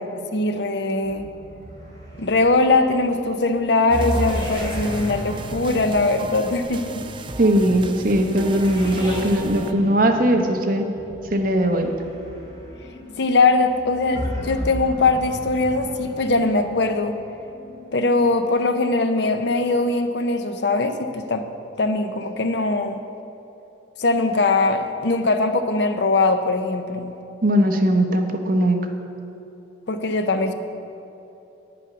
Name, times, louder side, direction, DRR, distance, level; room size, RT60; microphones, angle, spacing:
voice 1, 0.1-1.3 2.2-7.1 13.2-17.2 17.9-21.5 21.8-23.0 24.0-27.2 29.9-30.5, left 3 dB, 60° left, 8 dB, 0.6 m, -21 dB
sound 1, 1.0-18.5, equal, 20° left, 2.2 m, -34 dB
sound 2, 3.9-9.7, right 2 dB, 25° right, 0.4 m, -35 dB
voice 2, 7.4-10.9 11.3-11.9 27.4-28.8, right 1 dB, 45° right, 3 dB, 0.9 m, -19 dB
9.6 x 8.5 x 6.0 m, 3.0 s
head